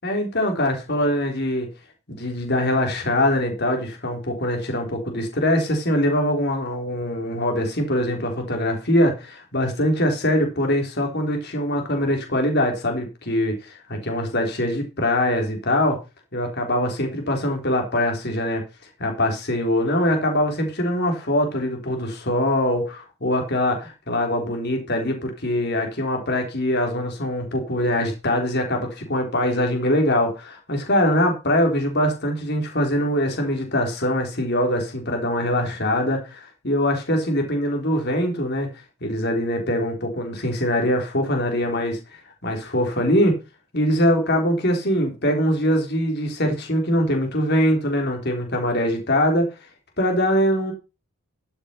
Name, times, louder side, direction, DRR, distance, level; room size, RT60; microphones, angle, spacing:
voice 1, 0.0-1.7 2.1-16.0 16.3-18.6 19.0-38.7 39.0-42.0 42.4-43.4 43.7-49.5 50.0-50.7, left 1 dB, 45° left, 3 dB, 3.6 m, -23 dB
12.5 x 7.1 x 5.6 m, 0.30 s
head